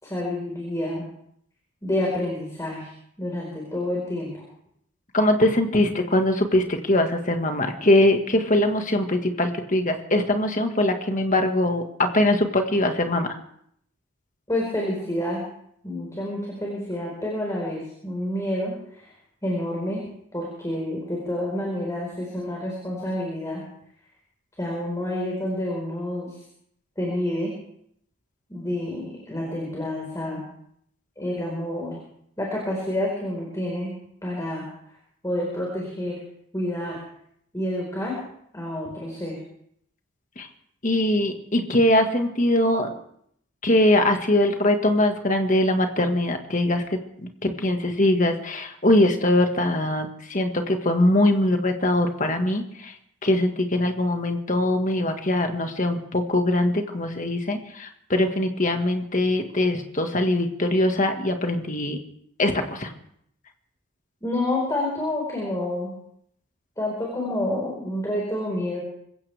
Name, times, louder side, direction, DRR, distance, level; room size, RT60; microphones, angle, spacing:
voice 1, 0.0-1.1 1.8-2.9 3.2-4.4 14.5-15.4 15.8-19.1 19.4-20.0 20.3-23.6 24.6-26.4 27.0-27.5 28.5-30.4 31.2-32.0 32.4-33.9 34.2-34.6 35.2-36.1 36.5-37.0 37.5-38.2 38.5-39.4 64.2-65.9 66.8-68.8, left 1 dB, 15° left, -3 dB, 4.6 m, -28 dB
voice 2, 5.1-13.3 40.4-40.5 40.8-42.9 43.6-46.8 47.2-52.9 53.2-62.0 62.4-62.9, left 1 dB, 35° left, 5 dB, 1.7 m, -22 dB
25.5 x 15.5 x 3.5 m, 0.70 s
head